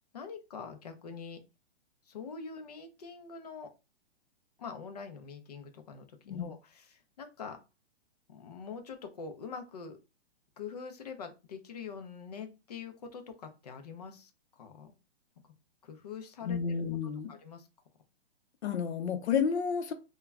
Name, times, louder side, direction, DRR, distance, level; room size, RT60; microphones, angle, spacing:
voice 1, 0.1-1.4 2.1-3.7 4.6-7.6 8.3-10.0 10.6-14.3 14.6-14.9 15.4-15.5 15.8-16.6 17.3-17.7, left 5 dB, 40° left, 0.4 m, -44 dB
voice 2, 16.4-17.3 18.6-19.9, left 6 dB, 80° left, 0.6 m, -31 dB
2.2 x 2.1 x 3.4 m
hypercardioid pair, 170°, 32 cm